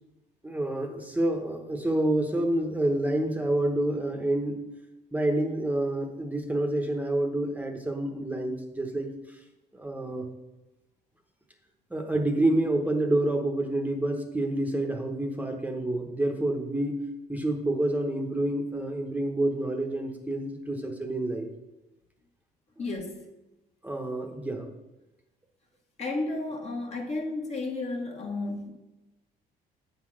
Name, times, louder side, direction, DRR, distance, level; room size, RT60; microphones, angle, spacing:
voice 1, 0.4-4.6 5.1-9.4 9.7-10.3 11.9-21.5 23.8-24.7, right 1 dB, 10° right, 3 dB, 1.0 m, -28 dB
voice 2, 22.8-23.3 26.0-28.7, left 2 dB, 40° left, 1 dB, 1.3 m, -33 dB
8.3 x 4.0 x 6.3 m, 1.0 s
cardioid pair, 110°, 17 cm